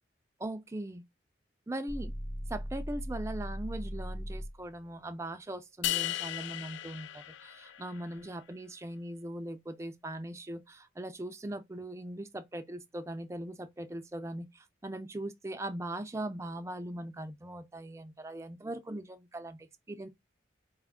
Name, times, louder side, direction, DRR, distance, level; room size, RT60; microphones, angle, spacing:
voice 1, 0.4-1.0 1.7-2.1 2.5-20.1, right 1 dB, 15° right, 0.4 m, -40 dB
sound 1, 1.9-4.7, equal, 55° left, 0.8 m, -38 dB
sound 2, 5.8-8.1, left 15 dB, 75° left, 0.3 m, -36 dB
4.7 x 2.4 x 3.5 m
head